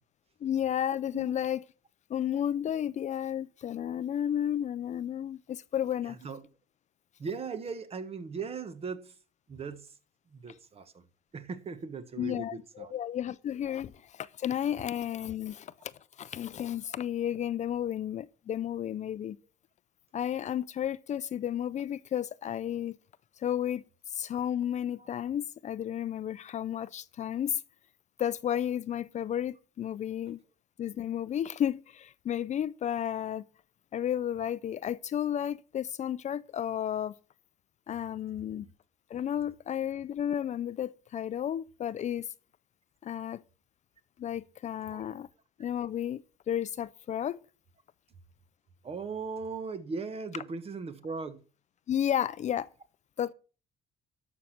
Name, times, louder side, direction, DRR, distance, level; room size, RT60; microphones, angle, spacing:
voice 1, 0.4-1.6 2.1-6.2 12.2-15.9 16.2-19.4 20.1-23.0 23.4-23.8 24.1-27.6 28.2-30.4 30.8-33.4 33.9-37.1 37.9-38.7 39.1-42.3 43.0-43.4 44.2-45.3 45.6-46.2 46.5-47.4 51.9-52.7 53.2-53.3, left 10 dB, 45° left, 0.5 m, -32 dB
voice 2, 6.0-6.4 7.2-9.2 9.5-10.0 10.3-11.0 11.3-13.0 25.0-25.1 38.6-38.7 44.9-45.0 48.8-51.4, right 5 dB, 35° right, 1.3 m, -38 dB
12.5 x 6.4 x 5.9 m
cardioid pair, 110°, 17 cm